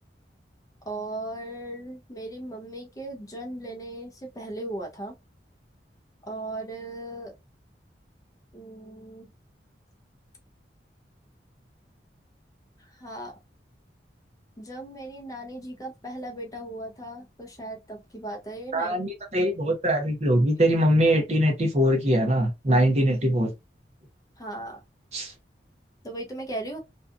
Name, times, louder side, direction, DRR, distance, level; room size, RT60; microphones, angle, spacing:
voice 1, 0.9-5.1 6.3-7.3 8.5-9.3 13.0-13.3 14.6-19.0 24.4-24.8 26.0-26.8, right 1 dB, 20° left, 0.6 m, -37 dB
voice 2, 18.7-23.5 25.1-25.3, equal, 35° right, 0.7 m, -22 dB
2.7 x 2.3 x 2.4 m
head